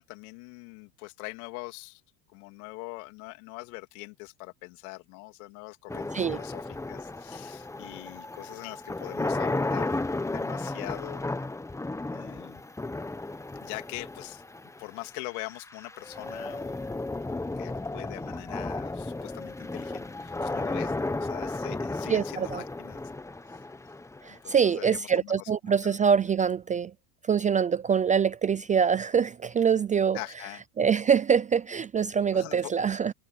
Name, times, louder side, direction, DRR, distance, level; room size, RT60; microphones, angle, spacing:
voice 1, 0.0-2.0 2.3-11.2 12.1-12.6 13.6-14.4 14.8-16.8 17.3-23.0 23.5-23.6 24.3-26.0 30.1-30.6 32.3-32.7, left 25 dB, 75° left, 3.2 m, -43 dB
sound 1, 5.9-24.9, left 2 dB, 5° left, 1.0 m, -34 dB
voice 2, 22.1-22.6 24.2-26.9 27.3-30.2 30.8-33.1, right 7 dB, 20° right, 0.4 m, -24 dB
supercardioid pair, 115°, 44 cm